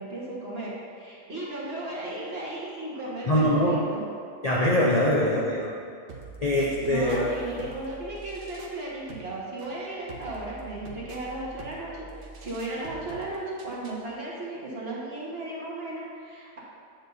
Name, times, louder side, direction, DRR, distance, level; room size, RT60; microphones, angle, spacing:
voice 1, 0.0-4.0 6.8-16.6, right 2 dB, 40° right, -6 dB, 1.6 m, -35 dB
voice 2, 3.3-3.8 4.4-5.7 6.4-7.3, equal, 60° left, -5 dB, 0.4 m, -23 dB
sound 1, 6.1-14.1, right 3 dB, 55° right, 0.6 m, -45 dB
8.1 x 7.1 x 2.7 m, 2.3 s
omnidirectional pair, 1.7 m